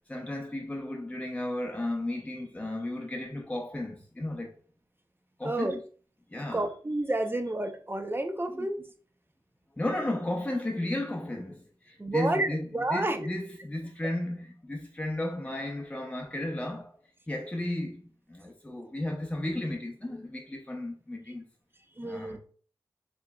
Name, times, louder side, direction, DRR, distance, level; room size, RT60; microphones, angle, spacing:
voice 1, 0.1-4.5 5.4-5.8 6.3-6.6 8.5-8.7 9.8-17.0 17.3-21.4 22.0-22.4, left 1 dB, 15° left, 0.6 m, -34 dB
voice 2, 5.4-5.8 6.5-8.8 12.0-13.3 22.0-22.4, right 2 dB, 25° right, 0.6 m, -30 dB
4.5 x 3.0 x 2.3 m
cardioid pair, 50°, 9 cm